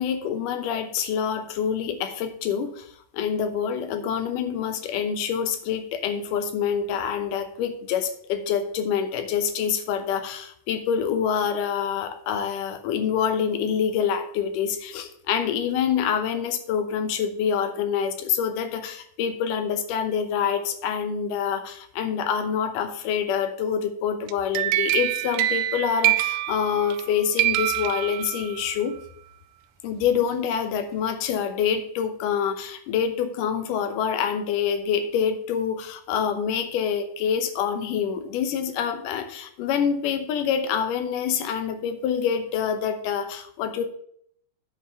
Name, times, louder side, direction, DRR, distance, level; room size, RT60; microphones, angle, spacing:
voice 1, 0.0-2.9 3.1-29.0 29.8-43.8, left 7 dB, 90° left, 8 dB, 2.5 m, -26 dB
sound 1, 24.3-27.1 27.4-28.7, right 15 dB, 90° right, 2.1 m, -25 dB
8.9 x 4.8 x 6.5 m, 0.64 s
omnidirectional pair, 3.7 m